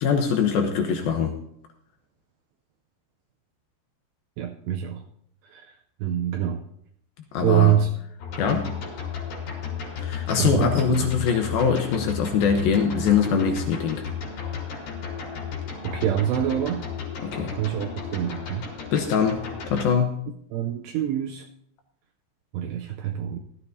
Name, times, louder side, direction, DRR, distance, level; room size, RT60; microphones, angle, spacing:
voice 1, 0.0-1.3 7.3-7.8 8.4-8.7 10.0-14.0 17.2-17.5 18.9-19.4 19.7-20.3, left 6 dB, 75° left, 4 dB, 2.2 m, -23 dB
voice 2, 4.4-5.0 5.5-5.7 6.0-6.6 7.4-7.9 10.4-11.1 15.8-16.8 17.5-18.7 20.5-21.5 22.5-23.4, right 11 dB, 85° right, 3 dB, 2.5 m, -25 dB
sound 1, 8.2-19.9, left 6 dB, 55° left, 4.4 m, -34 dB
17.0 x 13.0 x 2.7 m, 0.70 s
omnidirectional pair, 5.4 m